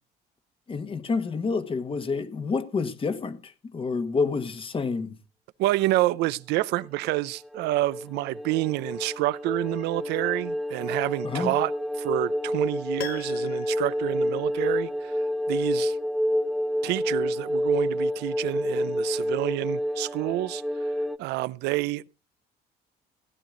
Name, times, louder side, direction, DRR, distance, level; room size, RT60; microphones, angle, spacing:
voice 1, 0.7-5.2 11.2-11.5, left 4 dB, 30° left, 1.3 m, -28 dB
voice 2, 5.6-11.7 12.0-15.1 15.5-16.0 16.8-20.6 21.2-22.0, right 17 dB, 85° right, 0.6 m, -28 dB
sound 1, 7.0-21.2, equal, ahead, 0.7 m, -29 dB
Piano, 13.0-15.1 15.4-15.5, left 14 dB, 70° left, 0.8 m, -42 dB
16.0 x 10.5 x 3.8 m
cardioid pair, 110°, 17 cm